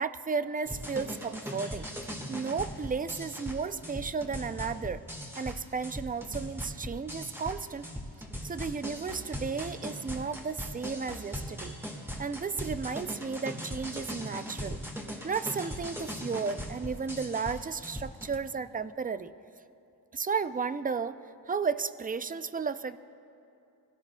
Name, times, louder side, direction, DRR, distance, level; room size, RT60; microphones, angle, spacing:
voice 1, 0.0-1.9 2.3-5.0 5.4-7.9 8.4-11.7 12.2-14.8 15.2-19.3 20.1-21.2 21.5-23.0, right 5 dB, 20° right, 13 dB, 0.4 m, -33 dB
Club Music, 0.7-18.4, equal, 5° right, 1.6 m, -39 dB
23.5 x 17.0 x 2.3 m, 2.7 s
cardioid pair, 70°, 39 cm